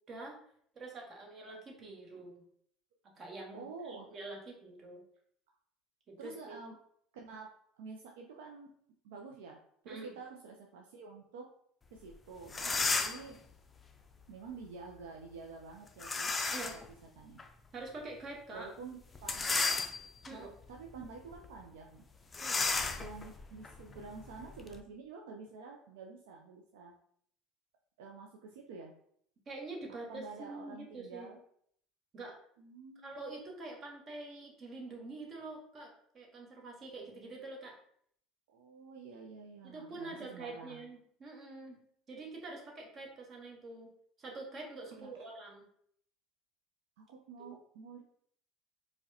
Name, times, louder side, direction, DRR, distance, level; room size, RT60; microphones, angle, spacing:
voice 1, 0.1-0.4 0.7-2.4 3.2-5.0 6.1-6.6 9.9-10.1 12.7-12.9 16.5-16.8 17.7-18.7 20.3-20.5 22.4-22.7 29.5-31.3 32.1-32.4 33.0-37.8 39.6-41.8 42.1-43.9 44.2-45.6 47.4-47.5, right 2 dB, 40° right, 1 dB, 1.0 m, -46 dB
voice 2, 3.5-4.1 6.2-6.8 7.1-7.5 7.8-8.7 9.0-11.4 11.9-12.8 13.0-13.3 14.3-16.3 17.2-17.4 18.5-19.9 20.3-22.0 23.0-26.9 28.0-28.9 30.1-31.4 32.6-33.2 38.5-40.9 44.9-45.1 47.0-48.0, right 4 dB, 75° right, 1 dB, 0.4 m, -49 dB
sound 1, 12.1-12.2 12.5-13.3 16.0-16.9 17.4-17.5 19.2-20.3 20.9-21.1 21.3-21.5 22.3-24.8, left 4 dB, 25° left, 0.4 m, -33 dB
4.5 x 2.2 x 2.7 m, 0.65 s
hypercardioid pair, 70°, 0 cm